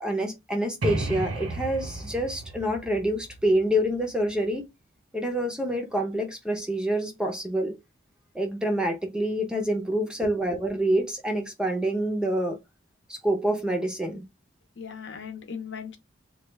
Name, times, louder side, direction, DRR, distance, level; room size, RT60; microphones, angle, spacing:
voice 1, 0.0-4.6 5.1-7.8 8.3-12.6 13.1-14.2, right 1 dB, 5° right, 0.6 m, -27 dB
sound 1, 0.8-4.5, right 2 dB, 80° right, 0.8 m, -34 dB
voice 2, 14.8-16.0, left 5 dB, 60° left, 0.8 m, -38 dB
3.1 x 2.3 x 3.2 m
head